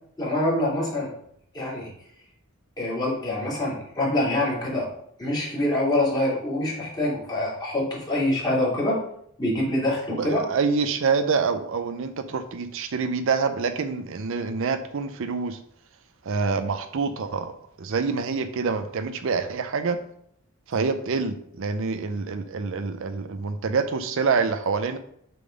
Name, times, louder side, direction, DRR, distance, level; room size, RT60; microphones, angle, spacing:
voice 1, 0.2-1.1 1.5-1.9 2.8-4.9 5.2-9.0 9.4-10.4, left 1 dB, 20° left, -5 dB, 2.4 m, -25 dB
voice 2, 10.2-15.6 16.3-17.5 17.8-20.0 20.7-25.0, right 5 dB, 65° right, 9 dB, 0.5 m, -26 dB
6.7 x 3.8 x 5.1 m, 0.69 s
head